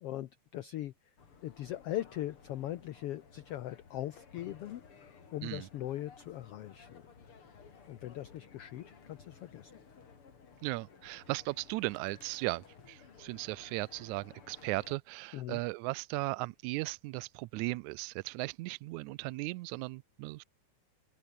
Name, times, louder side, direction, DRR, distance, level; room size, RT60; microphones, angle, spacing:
voice 1, 0.0-0.9 1.4-7.0 7.9-9.7 15.3-15.6, left 13 dB, 75° left, 1.4 m, -40 dB
sound 1, 1.2-15.0, left 5 dB, 45° left, 3.6 m, -57 dB
voice 2, 10.6-20.4, right 22 dB, 80° right, 1.8 m, -37 dB
open air
omnidirectional pair, 3.7 m